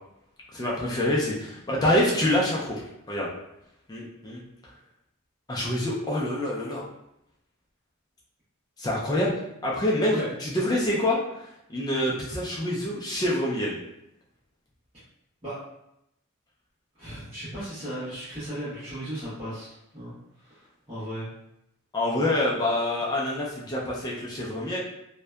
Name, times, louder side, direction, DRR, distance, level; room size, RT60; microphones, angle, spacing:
voice 1, 0.5-2.8 3.1-3.3 3.9-4.4 5.5-6.8 8.8-9.3 9.6-13.8 21.9-24.8, left 1 dB, 20° left, -5 dB, 0.3 m, -26 dB
voice 2, 17.0-21.3, right 1 dB, 25° right, -15 dB, 0.9 m, -36 dB
2.6 x 2.1 x 2.2 m, 0.81 s
head